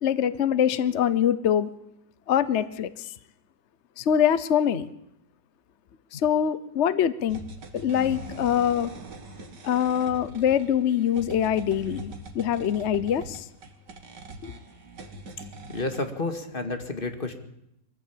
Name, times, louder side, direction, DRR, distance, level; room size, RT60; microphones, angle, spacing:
voice 1, 0.0-1.7 2.3-3.1 4.0-4.9 6.1-7.4 7.7-8.9 9.6-13.4 14.4-14.5, left 9 dB, 50° left, 15 dB, 1.0 m, -24 dB
sound 1, 7.3-16.1, right 2 dB, 70° right, 2.6 m, -42 dB
voice 2, 15.7-17.3, left 3 dB, 30° left, 6 dB, 2.2 m, -30 dB
23.0 x 15.0 x 8.6 m, 0.80 s
omnidirectional pair, 2.0 m